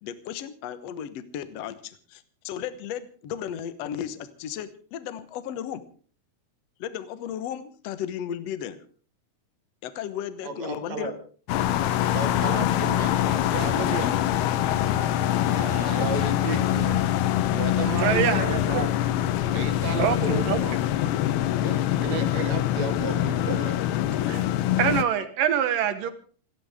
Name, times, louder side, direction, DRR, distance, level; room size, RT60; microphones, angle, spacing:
voice 1, 0.0-5.8 6.8-8.8 9.8-11.1, left 9 dB, 60° left, 12 dB, 1.7 m, -35 dB
voice 2, 10.4-11.1 12.1-14.1 15.5-17.0 17.4-18.9 19.5-20.8 21.6-23.8, right 4 dB, 50° right, 6 dB, 3.0 m, -33 dB
sound 1, 11.5-25.0, left 12 dB, 85° left, 2.9 m, -24 dB
voice 3, 18.0-18.9 20.0-20.6 24.3-24.5 24.8-26.1, right 9 dB, 70° right, 10 dB, 2.6 m, -25 dB
28.0 x 12.0 x 3.6 m, 0.43 s
omnidirectional pair, 4.4 m